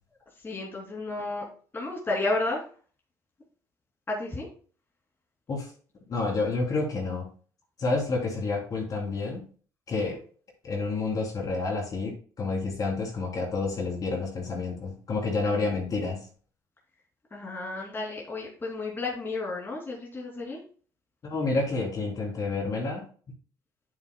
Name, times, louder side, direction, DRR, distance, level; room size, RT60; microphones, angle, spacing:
voice 1, 0.4-1.4 1.7-2.6 4.1-4.5 10.0-10.2 15.4-15.7 17.3-20.6, left 2 dB, 25° left, -3 dB, 2.7 m, -32 dB
voice 2, 6.1-7.3 7.8-9.4 9.9-10.2 10.6-16.2 21.2-23.0, left 3 dB, 45° left, 0 dB, 3.1 m, -29 dB
8.8 x 8.1 x 2.2 m, 0.41 s
cardioid pair, 90°, 9 cm